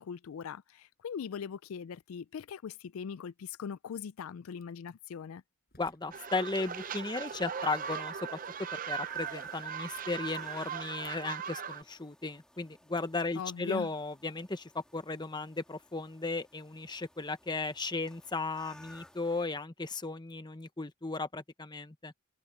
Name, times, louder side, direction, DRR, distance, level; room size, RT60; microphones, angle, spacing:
voice 1, 0.0-5.4 13.4-13.9, left 7 dB, 70° left, 0.4 m, -41 dB
sound 1, 4.6-4.9 5.7-6.2 6.5-8.7 9.1-10.3 10.7-11.3, left 6 dB, 45° left, 6.0 m, -64 dB
voice 2, 5.8-8.4 8.7-22.1, left 3 dB, 20° left, 1.0 m, -36 dB
sound 2, 6.1-11.8, right 7 dB, 40° right, 0.6 m, -39 dB
sound 3, 6.2-19.4, left 1 dB, 5° left, 1.6 m, -58 dB
head